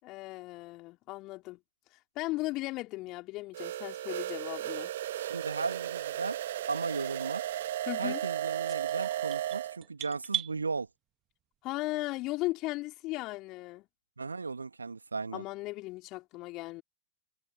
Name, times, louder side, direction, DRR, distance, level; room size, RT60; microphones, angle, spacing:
voice 1, 0.0-1.6 2.2-4.9 7.9-8.2 11.6-13.9 15.3-16.8, left 20 dB, 40° left, 4.5 m, -37 dB
sound 1, 3.5-9.8, right 13 dB, 60° right, 1.5 m, -35 dB
voice 2, 5.2-6.4 6.7-7.4 8.0-10.9 14.2-15.4, right 4 dB, 75° right, 2.5 m, -36 dB
sound 2, 8.7-10.5, right 13 dB, 30° right, 2.2 m, -37 dB
figure-of-eight pair, 90°, 0 cm